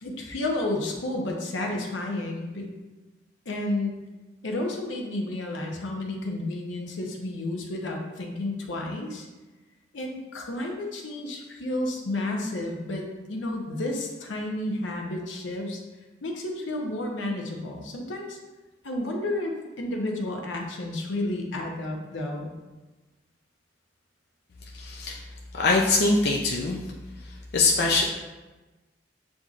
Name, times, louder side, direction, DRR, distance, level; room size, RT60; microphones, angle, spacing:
voice 1, 0.0-2.7 3.5-4.0 4.4-9.3 9.9-15.8 16.2-18.4 18.8-22.5, left 1 dB, 85° left, 1 dB, 0.7 m, -31 dB
voice 2, 24.7-25.2 25.5-26.8 27.2-28.0, left 3 dB, 55° left, -1 dB, 0.4 m, -23 dB
7.2 x 2.6 x 2.4 m, 1.2 s
head